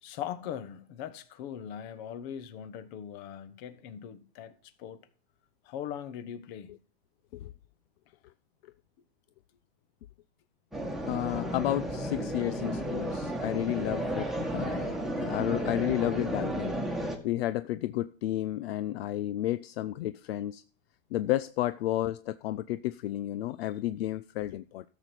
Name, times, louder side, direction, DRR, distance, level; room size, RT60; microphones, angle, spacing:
voice 1, 0.0-4.5 4.8-5.0 5.6-6.7, left 9 dB, 45° left, 1.3 m, -40 dB
sound 1, 10.7-17.2, right 1 dB, ahead, 1.5 m, -33 dB
voice 2, 11.0-14.9 15.2-16.8 17.2-20.6 21.1-24.8, left 14 dB, 70° left, 0.6 m, -32 dB
13.0 x 7.1 x 4.5 m
supercardioid pair, 145°, 31 cm